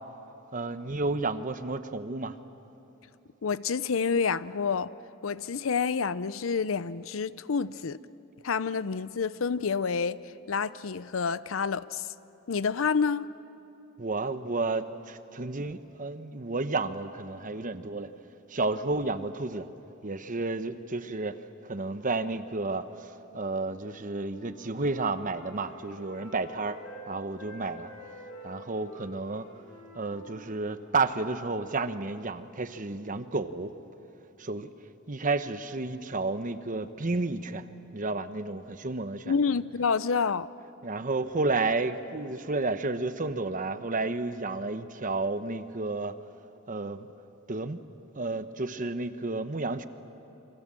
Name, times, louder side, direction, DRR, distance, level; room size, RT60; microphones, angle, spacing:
voice 1, 0.5-2.4 14.0-18.1 18.5-19.7 20.0-27.9 28.4-29.5 29.9-33.7 34.4-34.7 35.1-37.7 37.9-39.3 40.8-46.1 46.7-47.1 47.5-47.8 48.1-49.9, right 3 dB, 40° right, 1.0 m, -31 dB
voice 2, 3.4-4.9 5.2-8.0 8.4-10.2 10.5-12.0 12.5-13.3 39.3-40.5, left 5 dB, 90° left, 0.6 m, -28 dB
Wind instrument woodwind instrument, 24.0-27.1 27.4-31.1, equal, 75° left, 6.9 m, -48 dB
29.0 x 25.0 x 7.7 m
head